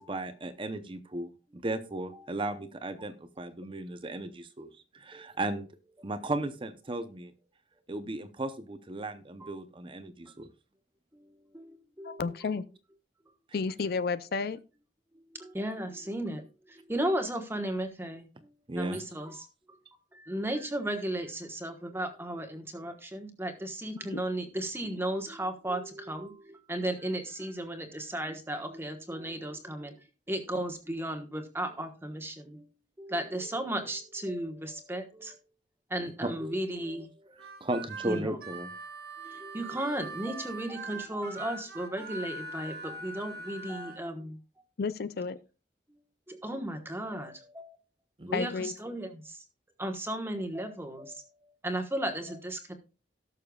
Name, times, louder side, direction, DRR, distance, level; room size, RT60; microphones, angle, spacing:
voice 1, 0.0-5.7 6.0-7.3 7.9-10.5 18.7-19.0 36.2-36.3 37.6-38.7 48.2-48.4, right 2 dB, 30° right, 0.7 m, -35 dB
voice 2, 11.1-12.2 13.3-13.4 15.1-19.8 20.1-29.9 30.3-32.7 33.0-35.4 35.9-37.5 38.0-38.4 39.2-44.4 46.3-47.8 48.3-49.4 49.8-52.7, right 1 dB, 15° right, 1.2 m, -35 dB
voice 3, 12.0-12.6 13.5-14.6 24.1-24.2 44.8-45.4 48.3-48.7, left 4 dB, 60° left, 0.4 m, -31 dB
Harmonica, 37.4-44.0, right 2 dB, 60° right, 1.6 m, -42 dB
18.0 x 6.6 x 2.3 m
head